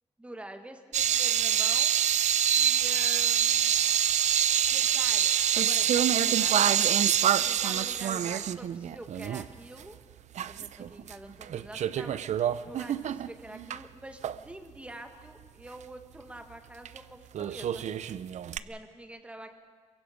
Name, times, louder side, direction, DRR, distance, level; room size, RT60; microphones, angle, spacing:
voice 1, 0.2-1.9 2.5-3.7 4.7-5.3 5.5-7.0 7.4-10.0 10.5-12.2 12.6-17.8 18.6-19.5, right 1 dB, 10° right, 6 dB, 1.6 m, -46 dB
sound 1, 0.9-9.5 9.8-9.9 10.4-11.1 11.4-13.8 14.2-14.4 16.9-17.0 17.3-18.6, right 10 dB, 70° right, 0.6 m, -26 dB
28.0 x 23.5 x 5.1 m, 1.5 s
wide cardioid pair, 160°, 12 cm